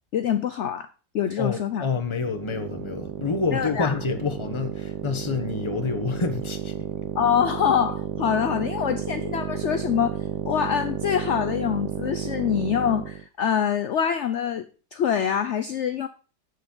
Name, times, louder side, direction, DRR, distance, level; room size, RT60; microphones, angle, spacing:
voice 1, 0.1-0.9 1.1-1.8 3.5-3.9 7.2-10.2 10.5-14.7 14.9-16.1, left 8 dB, 60° left, 0.7 m, -25 dB
voice 2, 1.4-6.9, left 4 dB, 20° left, 0.9 m, -28 dB
sound 1, 2.1-13.3, right 11 dB, 80° right, 1.2 m, -32 dB
7.9 x 7.0 x 5.4 m
omnidirectional pair, 1.8 m